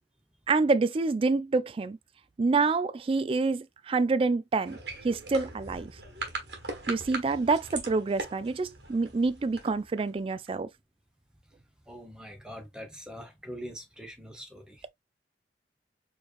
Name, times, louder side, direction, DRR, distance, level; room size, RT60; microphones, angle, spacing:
voice 1, 0.5-2.0 2.4-4.8 5.0-5.9 6.9-10.7, right 3 dB, 30° right, 0.3 m, -27 dB
sound 1, 4.6-10.5, right 3 dB, 65° right, 1.4 m, -40 dB
voice 2, 11.9-14.9, equal, 5° right, 1.0 m, -43 dB
4.4 x 3.1 x 2.5 m
head